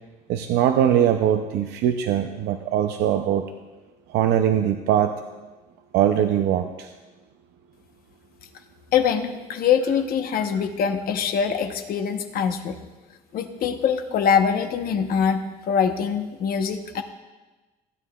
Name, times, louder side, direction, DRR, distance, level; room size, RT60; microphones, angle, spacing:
voice 1, 0.3-3.4 4.1-5.1 5.9-6.9, right 10 dB, 80° right, 6 dB, 0.6 m, -21 dB
voice 2, 8.9-12.8 13.3-17.0, left 7 dB, 65° left, 6 dB, 0.9 m, -23 dB
16.5 x 9.3 x 2.3 m, 1.2 s
cardioid pair, 110°, 17 cm